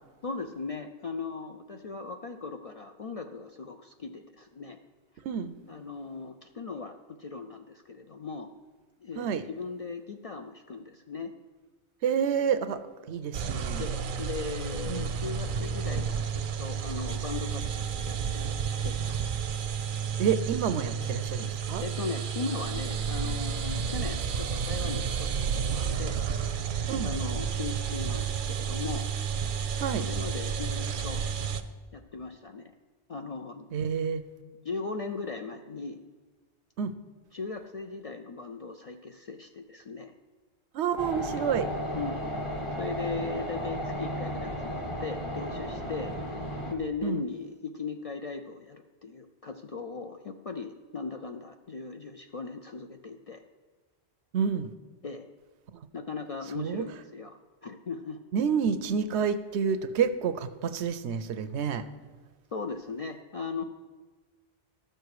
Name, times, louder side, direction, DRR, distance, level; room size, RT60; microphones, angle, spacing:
voice 1, 0.2-4.8 5.7-8.5 9.0-11.3 13.8-16.3 16.6-18.6 18.8-19.4 21.8-26.2 27.0-29.1 30.0-31.2 31.9-32.7 33.1-33.7 34.6-36.0 37.3-40.1 41.9-42.2 42.8-46.1 46.7-53.4 55.0-55.3 55.9-58.2 62.5-63.6, left 4 dB, 55° left, 6 dB, 0.4 m, -38 dB
voice 2, 12.0-12.8 13.1-13.8 14.9-15.1 20.2-21.8 26.9-27.1 29.8-30.1 33.7-34.2 36.8-36.9 40.7-41.7 47.0-47.2 54.3-54.7 56.6-56.8 58.3-61.9, right 7 dB, 85° right, 12 dB, 0.9 m, -29 dB
sound 1, 13.3-31.6, right 7 dB, 55° right, 0.7 m, -31 dB
sound 2, 41.0-46.7, equal, 30° left, 1.1 m, -34 dB
13.0 x 6.7 x 4.8 m, 1.3 s
omnidirectional pair, 1.1 m